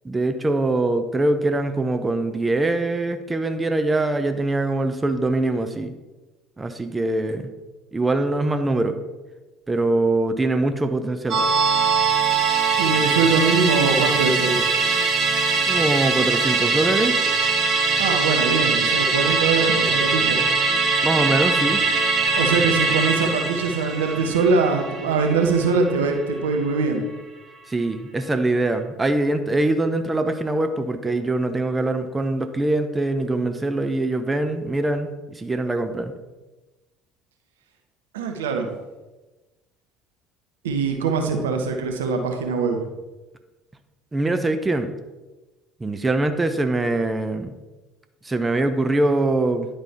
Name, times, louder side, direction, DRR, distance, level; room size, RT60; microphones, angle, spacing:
voice 1, 0.0-5.9 6.6-7.5 7.9-9.0 9.7-11.4 15.7-17.2 21.0-21.8 27.7-36.1 44.1-44.9 45.8-47.5 48.2-49.7, right 2 dB, 20° right, 8 dB, 0.8 m, -23 dB
Musical instrument, 11.3-26.0 26.3-26.4, right 4 dB, 45° right, 1.3 m, -21 dB
voice 2, 12.8-14.6 18.0-20.4 22.3-27.0 38.1-38.7 40.6-42.8, right 4 dB, 75° right, 4 dB, 0.9 m, -22 dB
10.5 x 5.3 x 4.2 m, 1.1 s
figure-of-eight pair, 60°, 0 cm